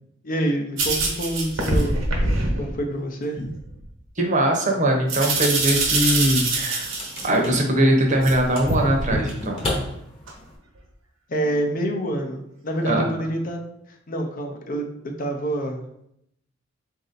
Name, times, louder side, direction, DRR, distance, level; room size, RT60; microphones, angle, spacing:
voice 1, 0.2-2.0 2.6-3.5 11.3-13.6 14.1-14.8 15.2-15.8, right 1 dB, 45° left, 3 dB, 0.6 m, -27 dB
sound 1, 0.8-2.7 3.4-3.9 5.1-7.3 8.2-9.1 9.6-9.8 10.3-10.4 11.4-11.5, right 2 dB, 85° right, 1.1 m, -24 dB
voice 2, 4.2-6.9 7.2-9.6 12.8-13.0, right 1 dB, 40° right, 0 dB, 0.8 m, -21 dB
sound 2, 5.0-10.6, left 1 dB, 25° left, 1.1 m, -34 dB
4.0 x 2.6 x 3.9 m, 0.74 s
head